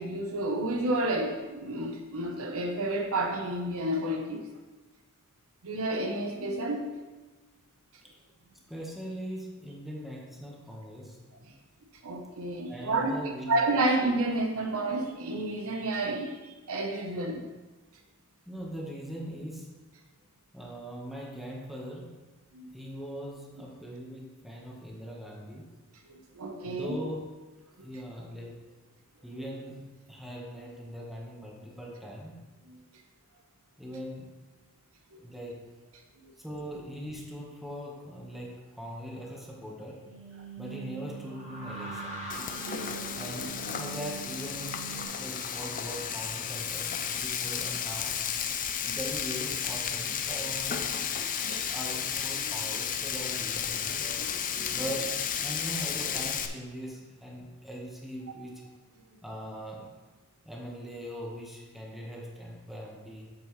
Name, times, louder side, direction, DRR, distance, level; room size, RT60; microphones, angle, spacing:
voice 1, 0.0-4.5 5.6-6.9 12.0-17.4 22.5-22.7 26.1-27.0 27.8-27.9 35.1-35.2 36.2-36.3 42.6-43.3 48.9-49.0 51.3-51.7, right 2 dB, 65° right, 3 dB, 1.0 m, -31 dB
voice 2, 8.7-11.2 12.7-13.5 18.5-19.7 20.5-22.2 22.7-25.7 26.6-27.3 27.8-28.7 29.2-29.8 30.1-32.4 33.8-34.3 35.2-35.7 36.4-40.1 40.6-42.2 43.1-48.2 48.8-51.0 51.5-54.1 54.7-58.6 59.2-59.9 60.4-63.3, equal, ahead, -3 dB, 1.3 m, -41 dB
sound 1, 40.0-45.0, right 5 dB, 30° right, 2.3 m, -42 dB
Frying (food), 42.3-56.5, left 8 dB, 40° left, 0.5 m, -33 dB
8.6 x 7.3 x 3.2 m, 1.2 s
head